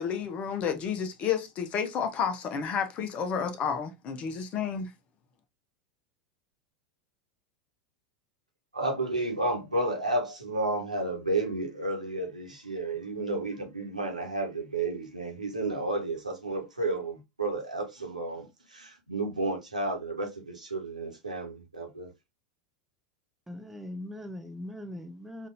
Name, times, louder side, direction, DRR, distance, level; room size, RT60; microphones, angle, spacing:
voice 1, 0.0-4.9, left 7 dB, 35° left, 0.8 m, -31 dB
voice 2, 8.7-22.1, right 2 dB, 85° right, 1.3 m, -32 dB
voice 3, 23.5-25.5, left 1 dB, 5° right, 0.7 m, -40 dB
5.2 x 2.6 x 2.6 m
figure-of-eight pair, 85°, 4 cm